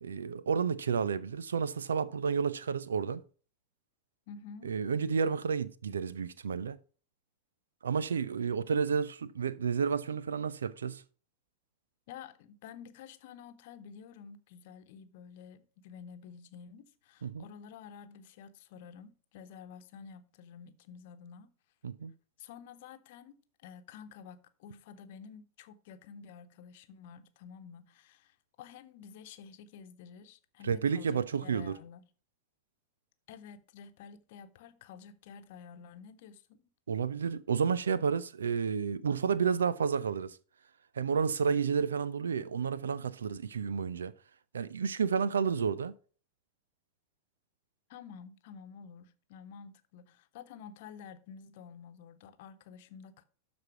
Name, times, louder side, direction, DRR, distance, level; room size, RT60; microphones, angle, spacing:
voice 1, 0.0-3.2 4.6-6.8 7.8-11.0 17.2-17.5 21.8-22.1 30.6-31.8 36.9-40.4 40.9-44.1 44.5-45.9, right 6 dB, 70° right, 0.5 m, -31 dB
voice 2, 4.3-4.7 12.1-21.5 22.4-23.3 23.6-32.0 33.3-36.6 47.9-53.2, left 7 dB, 50° left, 1.0 m, -50 dB
12.5 x 4.3 x 4.5 m
figure-of-eight pair, 90°, 0 cm